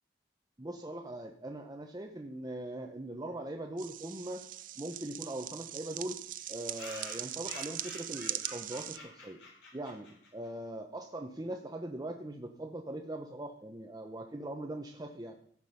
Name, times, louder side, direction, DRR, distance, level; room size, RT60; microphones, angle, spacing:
voice 1, 0.6-4.4 4.8-6.2 6.5-9.4 9.7-10.1 10.3-15.3, right 1 dB, 20° right, 3 dB, 0.8 m, -41 dB
sound 1, 3.8-9.0, right 13 dB, 50° right, 0.5 m, -41 dB
sound 2, 4.6-4.7 4.9-5.0 5.3-5.4 5.6-5.7 6.3-10.5, left 3 dB, 70° left, 3.5 m, -50 dB
16.5 x 6.1 x 5.4 m, 0.63 s
head